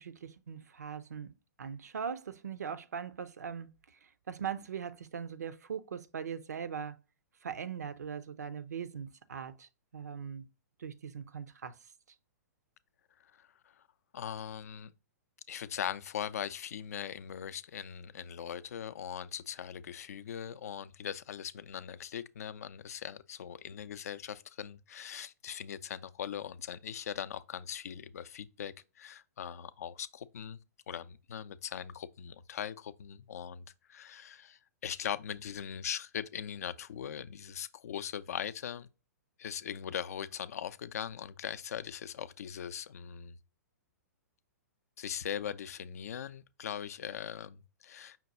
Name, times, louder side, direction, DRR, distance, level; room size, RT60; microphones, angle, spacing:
voice 1, 0.0-1.3 1.6-3.7 4.0-7.0 7.4-10.4 10.8-11.8, right 7 dB, 75° right, 0.5 m, -40 dB
voice 2, 13.2-13.8 14.1-14.9 15.5-30.6 30.9-38.9 39.4-43.4 45.0-48.2, left 9 dB, 65° left, 0.4 m, -40 dB
5.7 x 2.3 x 3.9 m
figure-of-eight pair, 115°, 9 cm